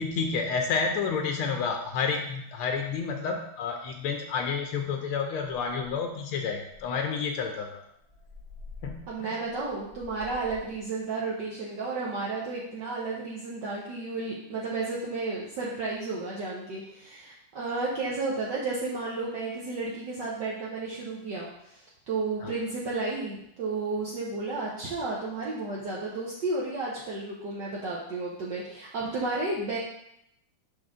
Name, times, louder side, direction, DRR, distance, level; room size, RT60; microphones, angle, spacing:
voice 1, 0.0-7.8 8.8-9.4 22.4-22.5, left 5 dB, 80° left, 4 dB, 1.5 m, -30 dB
sound 1, 6.7-10.8, left 4 dB, 15° right, 1.1 m, -48 dB
voice 2, 9.1-29.8, right 3 dB, 60° right, -6 dB, 1.5 m, -32 dB
6.3 x 5.1 x 3.6 m, 0.77 s
omnidirectional pair, 2.3 m